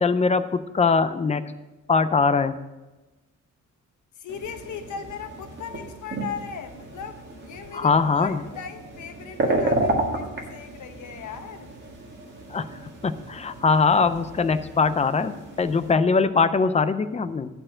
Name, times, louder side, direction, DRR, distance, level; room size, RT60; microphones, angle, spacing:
voice 1, 0.0-1.4 1.9-2.5 7.7-8.4 12.5-12.7 13.0-17.5, left 4 dB, 20° left, 12 dB, 0.4 m, -22 dB
voice 2, 4.2-11.7, left 7 dB, 70° left, 7 dB, 1.0 m, -38 dB
sound 1, 4.3-15.9, right 2 dB, 35° right, 1.7 m, -32 dB
11.0 x 4.4 x 7.5 m, 1.1 s
wide cardioid pair, 160°, 31 cm